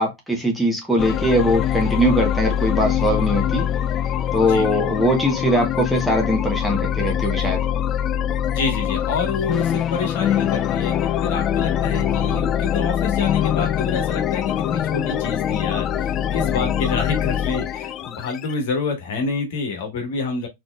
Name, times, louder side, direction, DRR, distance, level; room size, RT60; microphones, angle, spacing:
voice 1, 0.0-3.6 4.3-7.6, equal, ahead, 1.3 m, -21 dB
sound 1, 1.0-18.5, left 10 dB, 30° left, 0.3 m, -23 dB
voice 2, 8.4-10.9 11.2-20.5, left 4 dB, 55° left, 1.5 m, -27 dB
4.1 x 3.2 x 2.3 m
figure-of-eight pair, 90°, 0 cm